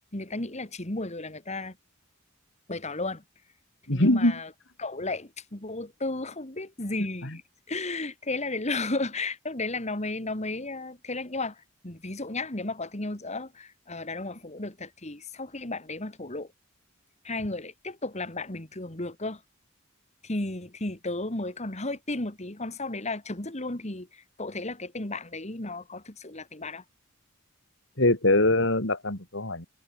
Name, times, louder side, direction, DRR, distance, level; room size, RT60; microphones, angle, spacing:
voice 1, 0.1-1.8 2.7-3.2 3.9-4.5 4.8-7.4 7.7-16.5 17.2-19.4 20.2-26.8, left 2 dB, 30° left, 2.3 m, -34 dB
voice 2, 3.9-4.4 7.2-7.4 28.0-29.7, left 1 dB, 60° left, 3.9 m, -23 dB
head